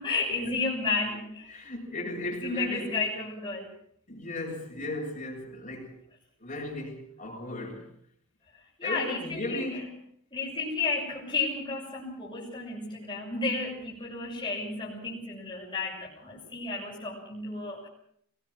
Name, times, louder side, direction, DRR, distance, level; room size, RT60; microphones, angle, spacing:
voice 1, 0.0-1.5 2.4-3.7 8.8-9.8 10.3-17.9, left 3 dB, 25° left, 6.6 m, -32 dB
voice 2, 1.5-3.0 4.1-6.0 6.4-7.9 8.8-10.0, left 1 dB, 40° left, 7.5 m, -36 dB
24.5 x 19.5 x 6.3 m
head